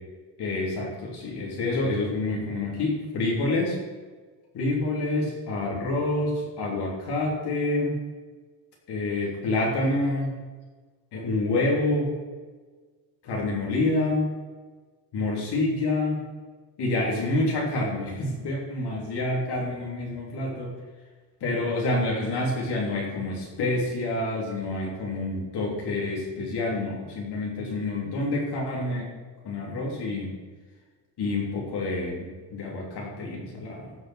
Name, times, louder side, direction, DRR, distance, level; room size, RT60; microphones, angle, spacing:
voice 1, 0.4-3.8 4.5-8.0 8.9-10.4 11.1-12.1 13.2-14.3 15.1-16.2 16.8-20.7 21.4-29.1 29.4-30.4 31.2-34.0, left 2 dB, 65° left, -2 dB, 3.2 m, -27 dB
15.5 x 5.3 x 6.3 m, 1.4 s
cardioid pair, 125°, 44 cm